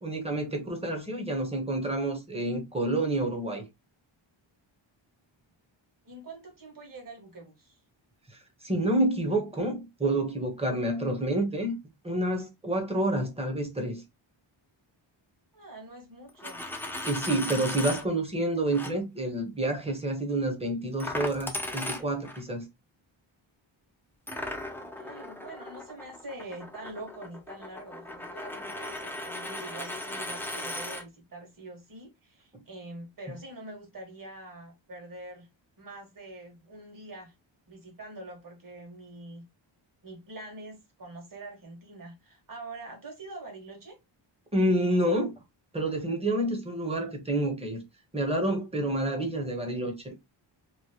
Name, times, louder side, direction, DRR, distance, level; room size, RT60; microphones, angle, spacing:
voice 1, 0.0-3.6 8.3-8.4 8.6-11.7 12.0-14.0 17.1-22.6 44.5-45.3 45.7-47.8 48.1-50.1, right 1 dB, 10° right, 0.8 m, -28 dB
voice 2, 6.0-7.8 15.5-16.6 24.8-35.5 35.8-37.3 37.7-39.4 40.0-44.0, right 2 dB, 40° right, 1.4 m, -45 dB
Coin (dropping), 16.3-18.0 18.7-18.9 21.0-22.4 24.3-31.0, left 1 dB, 5° left, 0.3 m, -37 dB
3.1 x 2.6 x 2.8 m
wide cardioid pair, 145°, 48 cm